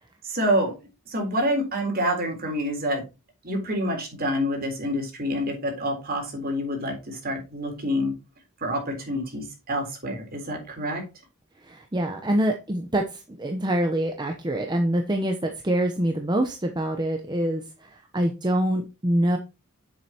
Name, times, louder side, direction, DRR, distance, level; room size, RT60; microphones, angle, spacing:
voice 1, 0.2-0.7 1.1-3.0 3.4-8.1 8.6-11.0, equal, 45° right, 2 dB, 3.8 m, -27 dB
voice 2, 11.6-19.4, right 1 dB, 20° right, 3 dB, 0.9 m, -25 dB
9.5 x 7.5 x 2.9 m, 0.27 s
head